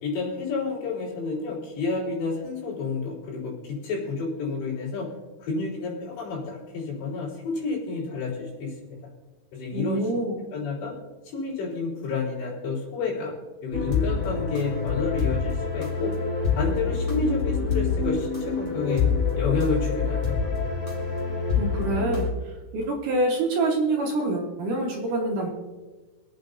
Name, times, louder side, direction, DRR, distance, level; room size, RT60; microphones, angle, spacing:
voice 1, 0.0-5.1 5.4-9.0 9.5-10.2 10.5-10.9 11.2-13.3 13.6-16.2 16.5-19.0 19.4-20.6, left 4 dB, 85° left, -6 dB, 6.1 m, -30 dB
voice 2, 9.7-10.4 21.6-22.3 22.7-25.5, right 2 dB, 60° right, 0 dB, 2.5 m, -26 dB
sound 1, 13.7-22.3, left 5 dB, 30° left, 2.7 m, -26 dB
25.5 x 8.7 x 2.7 m, 1.3 s
omnidirectional pair, 4.8 m